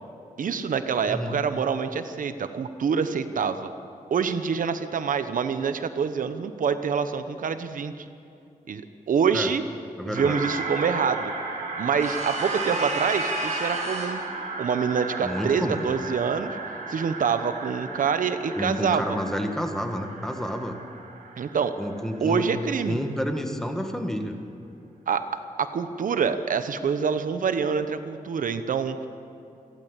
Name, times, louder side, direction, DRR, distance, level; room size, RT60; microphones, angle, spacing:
voice 1, 0.4-3.7 4.1-8.1 8.7-9.6 10.0-11.3 11.8-14.2 14.6-16.6 16.9-19.2 21.4-21.7 22.2-23.0 25.1-25.3 25.6-29.1, right 6 dB, 70° right, 10 dB, 1.0 m, -26 dB
voice 2, 1.1-1.4 9.3-9.5 10.0-10.4 15.2-15.9 18.6-20.8 21.8-22.5 22.8-24.4, equal, 5° left, 4 dB, 1.7 m, -29 dB
sound 1, 10.1-22.8, right 3 dB, 90° right, 3.1 m, -35 dB
sound 2, 12.0-14.3, right 2 dB, 55° right, 6.1 m, -31 dB
28.5 x 12.5 x 8.2 m, 2.5 s
wide cardioid pair, 130°, 14 cm